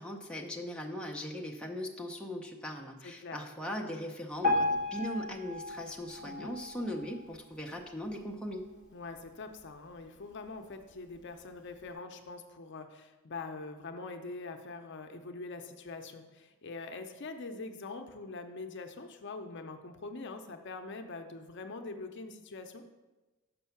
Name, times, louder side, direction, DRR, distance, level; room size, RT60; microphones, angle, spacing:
voice 1, 0.0-8.7, equal, 5° left, -1 dB, 0.7 m, -39 dB
voice 2, 3.0-3.4 6.2-6.6 8.9-22.8, left 3 dB, 55° left, 6 dB, 0.6 m, -44 dB
Piano, 4.4-7.5 8.1-8.2 8.5-8.6 9.3-9.4 10.0-10.1, left 2 dB, 35° right, 2.2 m, -34 dB
6.8 x 5.5 x 5.8 m, 1.1 s
head